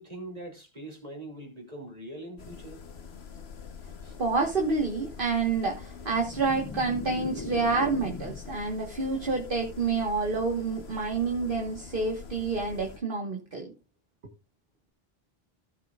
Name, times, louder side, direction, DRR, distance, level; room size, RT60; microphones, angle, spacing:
voice 1, 0.0-2.8 4.0-4.2, right 1 dB, 40° right, 3.2 m, -42 dB
sound 1, 2.4-13.0, left 6 dB, 90° left, 1.4 m, -45 dB
voice 2, 4.2-13.7, right 4 dB, 60° right, 1.7 m, -28 dB
sound 2, 6.1-8.6, left 4 dB, 30° left, 0.4 m, -39 dB
16.0 x 7.5 x 2.4 m
omnidirectional pair, 1.0 m